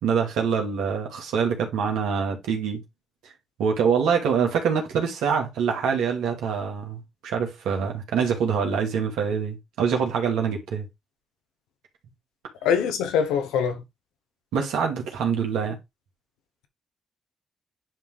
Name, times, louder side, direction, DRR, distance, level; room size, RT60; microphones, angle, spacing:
voice 1, 0.0-2.8 3.6-10.9 14.5-15.8, right 6 dB, 85° right, 2.4 m, -25 dB
voice 2, 12.6-13.8, left 7 dB, 90° left, 1.0 m, -23 dB
10.5 x 3.7 x 3.4 m
supercardioid pair, 50°, 0 cm